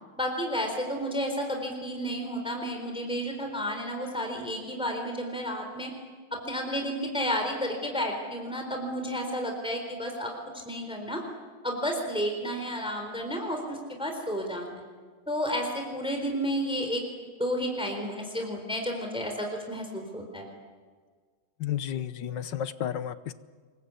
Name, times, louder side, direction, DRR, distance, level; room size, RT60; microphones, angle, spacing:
voice 1, 0.2-5.9 6.4-10.3 10.7-11.2 11.6-14.8 15.3-17.0 17.4-20.5, equal, ahead, 3 dB, 3.9 m, -31 dB
voice 2, 21.6-23.3, left 10 dB, 65° left, 13 dB, 1.5 m, -32 dB
26.5 x 23.0 x 8.4 m, 1.5 s
omnidirectional pair, 2.2 m